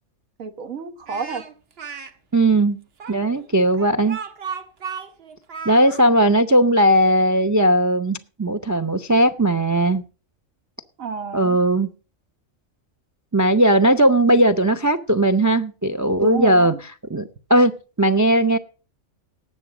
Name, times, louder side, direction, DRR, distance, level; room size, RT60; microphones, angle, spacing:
voice 1, 0.4-1.4 11.0-11.6 16.2-16.8, right 5 dB, 85° right, 11 dB, 1.6 m, -30 dB
Speech, 1.1-2.1 3.0-6.0, right 6 dB, 50° right, 1.3 m, -34 dB
voice 2, 2.3-2.8 3.1-4.2 5.6-10.0 11.3-11.9 13.3-17.7 18.0-18.6, right 1 dB, 30° right, 11 dB, 0.3 m, -18 dB
18.5 x 7.6 x 4.8 m, 0.35 s
omnidirectional pair, 1.3 m